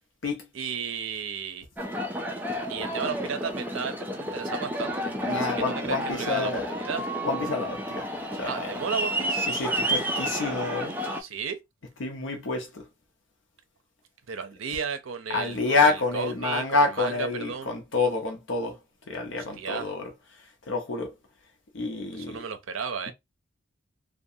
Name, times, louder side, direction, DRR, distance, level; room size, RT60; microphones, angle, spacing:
voice 1, 0.5-1.7 2.7-7.1 8.5-9.4 11.2-11.6 14.3-17.8 19.3-19.9 22.1-23.1, right 6 dB, 80° right, 0.5 m, -34 dB
Aircraft, 1.8-11.2, equal, 10° right, 0.4 m, -31 dB
voice 2, 5.2-6.7 7.2-8.1 8.4-8.7 9.5-10.9 12.0-12.8 15.3-18.8 19.1-20.1 20.7-21.1 21.7-22.4, left 3 dB, 65° left, 0.7 m, -28 dB
2.4 x 2.2 x 2.7 m
head